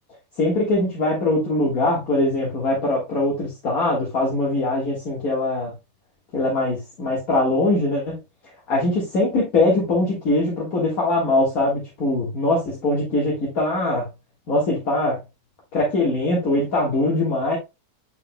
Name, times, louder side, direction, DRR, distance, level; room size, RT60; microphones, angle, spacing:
voice 1, 0.4-5.7 6.3-8.2 8.7-14.1 14.5-15.2 15.7-17.6, left 2 dB, 65° left, -3 dB, 2.2 m, -22 dB
8.1 x 5.6 x 2.2 m, 0.24 s
omnidirectional pair, 1.6 m